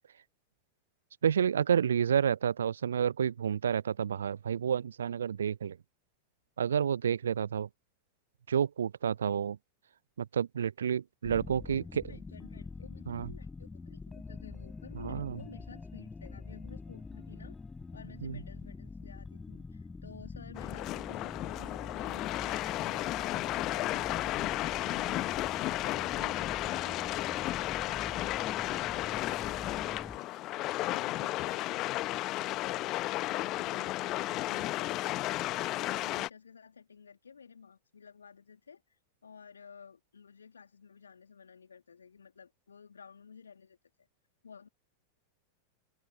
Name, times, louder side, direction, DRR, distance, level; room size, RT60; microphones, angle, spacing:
voice 1, 1.2-5.8 6.6-7.7 8.5-9.6 10.2-12.2 13.1-13.3 14.9-15.4 18.2-18.4, right 8 dB, 65° right, 0.3 m, -30 dB
sound 1, 11.2-30.2, left 4 dB, 10° left, 5.2 m, -45 dB
voice 2, 11.7-17.6 17.9-35.4 35.7-38.8 39.2-43.8 44.4-44.7, left 6 dB, 70° left, 2.4 m, -53 dB
sound 2, 20.6-36.3, left 17 dB, 35° left, 1.0 m, -33 dB
open air
figure-of-eight pair, 90°, 0 cm